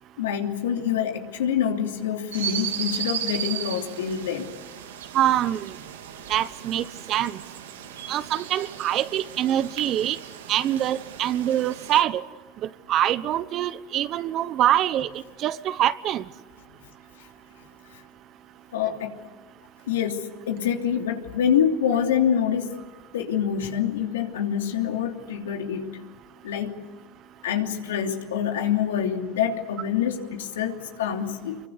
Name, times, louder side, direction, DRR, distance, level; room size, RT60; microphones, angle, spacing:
voice 1, 0.2-4.5 18.7-19.2 19.9-22.7 23.1-25.9 26.4-26.8 27.4-31.6, left 8 dB, 90° left, 3.0 m, -26 dB
sound 1, 2.3-12.0, right 9 dB, 90° right, 2.4 m, -36 dB
voice 2, 5.1-5.7 6.3-7.3 8.1-10.2 10.5-12.2 12.9-15.1 15.4-16.2, right 12 dB, 45° right, 1.1 m, -24 dB
26.0 x 23.0 x 8.2 m
hypercardioid pair, 100°, 0 cm